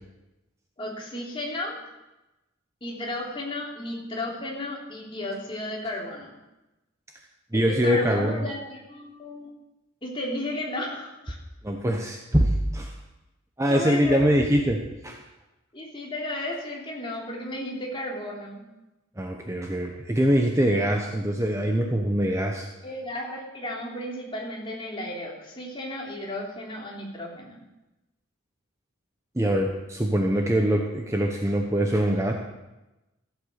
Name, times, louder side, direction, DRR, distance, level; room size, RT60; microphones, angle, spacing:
voice 1, 0.8-1.8 2.8-6.3 7.5-9.5 10.0-11.4 13.7-14.3 15.7-18.6 22.8-27.6, left 1 dB, 25° left, -2 dB, 3.0 m, -34 dB
voice 2, 7.5-8.4 11.6-12.9 13.6-15.2 19.2-22.7 29.3-32.3, equal, 15° right, 2 dB, 0.9 m, -23 dB
15.0 x 8.2 x 6.6 m, 1.0 s
head